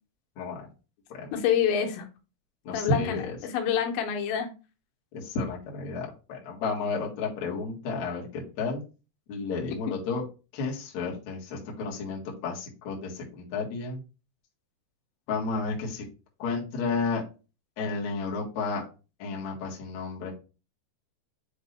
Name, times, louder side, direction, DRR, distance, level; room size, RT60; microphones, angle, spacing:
voice 1, 0.4-0.7 1.1-1.4 2.6-3.4 5.1-8.8 9.3-10.2 10.5-14.0 15.3-16.1 16.4-17.2 17.8-18.8 19.2-20.3, left 4 dB, 55° left, -3 dB, 2.3 m, -32 dB
voice 2, 1.3-2.1 2.7-4.5, left 8 dB, 85° left, 4 dB, 3.2 m, -27 dB
8.0 x 3.6 x 3.3 m, 0.32 s
omnidirectional pair, 5.2 m